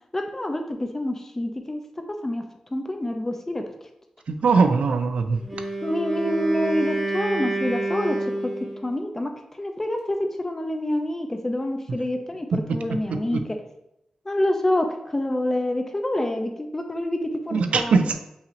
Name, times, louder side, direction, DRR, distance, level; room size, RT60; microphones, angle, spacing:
voice 1, 0.1-1.8 2.1-2.4 2.7-3.6 5.8-8.2 8.4-8.5 8.8-13.4 14.3-18.1, left 1 dB, 20° left, 5 dB, 0.5 m, -27 dB
voice 2, 4.3-5.4 12.5-12.6 12.9-13.4 17.5-18.2, right 4 dB, 85° right, 8 dB, 0.4 m, -21 dB
Wind instrument woodwind instrument, 5.4-8.9, right 1 dB, 5° right, 1.1 m, -28 dB
5.5 x 2.9 x 2.6 m, 0.81 s
wide cardioid pair, 110°, 2 cm